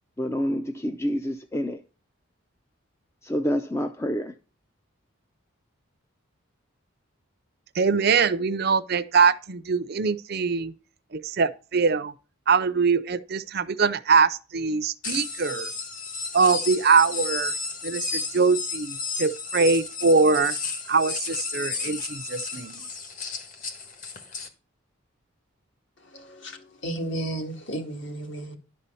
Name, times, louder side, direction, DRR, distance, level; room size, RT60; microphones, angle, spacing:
voice 1, 0.2-1.8 3.2-4.3, equal, 15° left, 0.5 m, -27 dB
voice 2, 7.8-10.7 11.1-12.1 12.5-15.7 16.3-17.5 17.8-20.5 20.9-22.8, right 5 dB, 50° right, 0.6 m, -23 dB
sound 1, 15.0-24.5, left 4 dB, 40° left, 1.5 m, -33 dB
voice 3, 26.1-28.6, right 1 dB, 55° left, 2.0 m, -33 dB
11.5 x 4.3 x 6.9 m
head